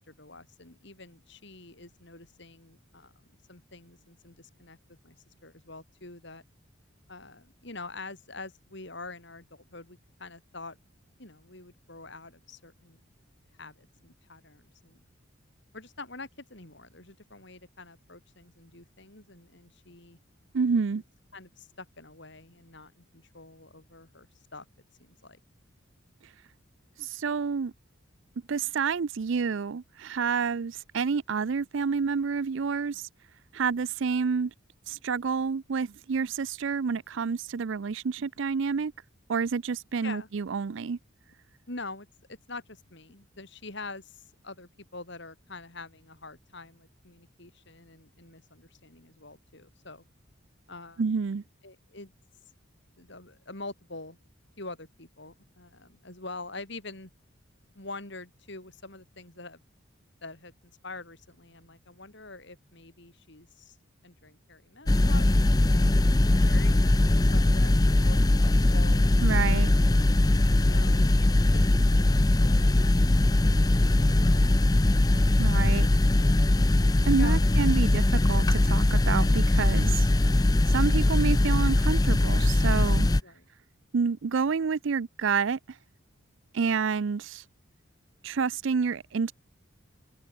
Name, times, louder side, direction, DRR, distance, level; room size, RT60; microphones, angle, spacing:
voice 1, 0.0-3.1 3.5-5.2 5.4-6.4 7.1-10.8 11.2-13.0 13.6-15.0 15.7-20.2 20.9-21.0 21.3-24.7 25.0-25.4 40.0-40.3 41.7-50.0 50.7-51.1 51.6-52.1 53.0-54.2 54.6-57.1 57.7-59.6 60.2-63.8 64.0-67.7 68.0-68.2 68.5-69.4 70.7-74.5 74.8-75.2 76.2-76.4 77.2-77.4 77.7-77.9 83.2-83.4, left 3 dB, 55° left, 4.2 m, -45 dB
voice 2, 20.5-21.0 27.0-27.7 28.5-33.1 33.5-34.5 34.9-38.9 39.3-41.0 51.0-51.4 69.2-69.7 75.4-75.9 77.1-80.1 80.7-83.1 83.9-85.6 86.5-87.4 88.2-89.3, right 5 dB, 60° right, 0.4 m, -28 dB
sound 1, 64.9-83.2, left 1 dB, 20° left, 0.5 m, -21 dB
head